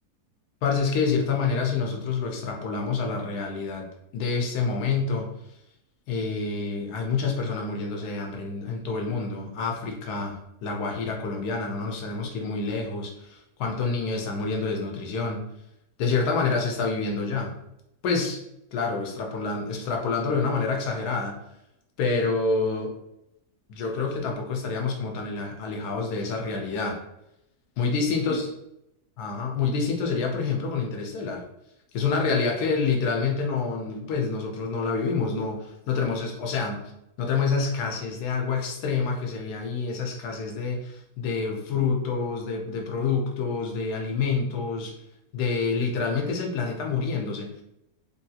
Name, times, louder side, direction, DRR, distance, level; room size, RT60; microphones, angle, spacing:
voice 1, 0.6-3.9 4.1-5.3 6.1-15.4 16.0-17.5 18.0-18.4 18.7-21.4 22.0-22.9 23.7-27.0 27.8-28.5 29.2-31.4 31.9-36.9 37.2-44.9 45.3-47.5, left 4 dB, 85° left, 1 dB, 1.2 m, -27 dB
3.4 x 2.8 x 2.3 m, 0.83 s
omnidirectional pair, 1.6 m